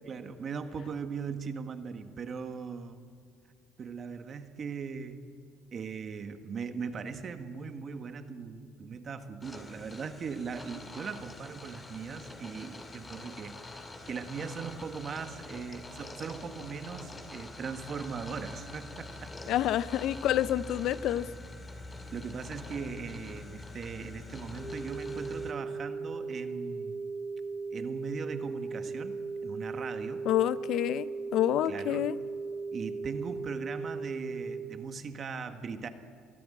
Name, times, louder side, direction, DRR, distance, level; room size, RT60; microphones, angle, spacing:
voice 1, 0.0-3.1 3.8-5.2 5.7-13.8 14.1-19.5 22.1-27.0 27.7-30.3 31.7-32.1 32.7-35.9, right 5 dB, 40° right, 8 dB, 1.6 m, -39 dB
sound 1, 9.4-25.5, left 2 dB, 20° left, 2.2 m, -45 dB
voice 2, 19.5-21.3 30.3-31.1 31.3-32.2, left 12 dB, 60° left, 17 dB, 0.5 m, -28 dB
sound 2, 24.6-34.6, right 4 dB, 80° left, 4.2 m, -37 dB
23.0 x 15.0 x 8.8 m, 2.2 s
cardioid pair, 125°, 0 cm